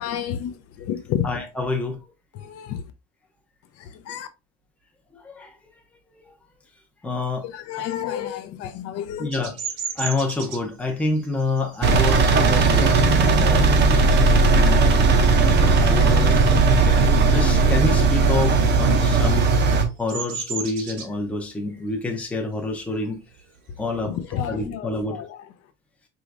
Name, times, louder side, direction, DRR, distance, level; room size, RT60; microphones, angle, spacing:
voice 1, 0.0-1.3 2.3-2.8 3.8-4.3 7.5-9.3 24.0-25.4, left 10 dB, 55° left, 0.6 m, -30 dB
voice 2, 1.2-2.0 5.4-5.5 7.0-7.4 9.2-9.5 10.0-14.0 14.5-15.1 15.4-19.5 20.0-23.2 23.8-24.2 24.5-25.2, left 3 dB, 5° left, 0.6 m, -28 dB
Bird vocalization bird call bird song, 9.3-14.5 14.9-15.3 15.6-16.8 17.1-24.4, right 6 dB, 85° right, 1.2 m, -37 dB
Engine, 11.8-19.8, right 3 dB, 35° right, 0.6 m, -17 dB
4.7 x 3.1 x 2.5 m
cardioid pair, 175°, 30 cm